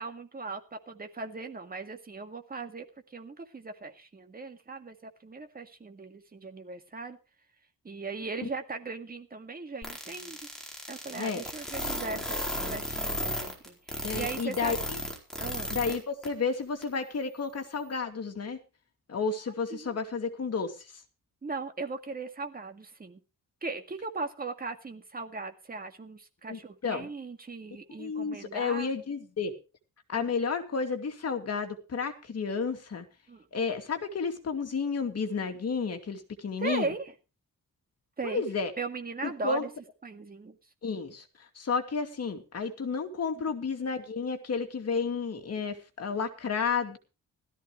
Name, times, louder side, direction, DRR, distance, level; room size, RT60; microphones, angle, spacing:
voice 1, 0.0-7.2 7.8-10.5 10.9-14.8 15.4-15.8 19.7-20.0 21.4-23.2 23.6-28.9 33.3-33.5 36.6-37.1 38.2-38.4 38.8-39.7 40.0-40.6 43.4-43.5, right 3 dB, 25° right, 6 dB, 2.1 m, -38 dB
sound 1, 9.8-16.0 16.2-16.3 16.8-16.9, left 1 dB, ahead, 4.3 m, -34 dB
voice 2, 14.0-15.0 15.7-18.6 19.1-20.8 26.5-27.1 28.0-29.5 30.1-33.1 33.5-36.9 38.2-38.7 39.2-39.6 40.8-47.0, left 5 dB, 50° left, 5 dB, 2.5 m, -31 dB
17.0 x 13.5 x 3.2 m, 0.32 s
wide cardioid pair, 165°, 33 cm